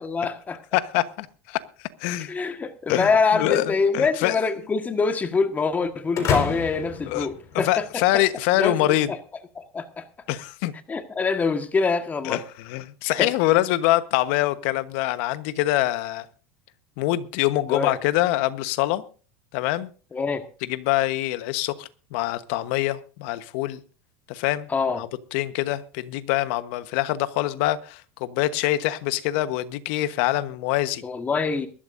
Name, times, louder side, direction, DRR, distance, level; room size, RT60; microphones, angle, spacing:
voice 1, 0.0-0.6 2.2-8.2 8.6-8.8 9.1-9.2 9.5-10.0 10.9-12.4 13.2-13.3 17.7-17.9 20.1-20.4 24.7-25.0 31.0-31.7, left 4 dB, 20° left, 1.5 m, -25 dB
voice 2, 0.7-1.6 2.0-2.3 2.9-4.4 7.1-7.3 7.5-9.1 10.3-10.7 12.2-16.3 17.0-19.0 19.5-19.9 20.7-23.8 24.3-24.7 24.9-31.0, left 15 dB, 65° left, 1.2 m, -24 dB
sound 1, 6.1-8.1, left 6 dB, 45° left, 4.7 m, -29 dB
22.5 x 12.5 x 2.6 m
hypercardioid pair, 100°, 7 cm